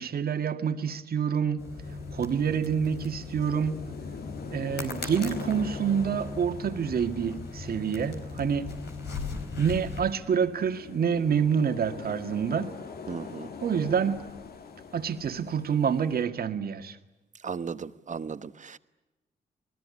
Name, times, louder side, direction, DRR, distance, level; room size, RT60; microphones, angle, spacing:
voice 1, 0.0-1.7 2.1-3.8 4.5-8.7 9.6-12.7 13.6-14.3 14.9-17.0, right 7 dB, 65° right, 1.9 m, -27 dB
sound 1, 1.6-10.1, left 3 dB, 85° left, 4.6 m, -38 dB
sound 2, 1.8-16.2, left 6 dB, 70° left, 2.0 m, -44 dB
voice 2, 13.1-13.5 17.4-18.8, right 6 dB, 50° right, 1.3 m, -36 dB
29.0 x 20.0 x 9.7 m
cardioid pair, 60°, 17 cm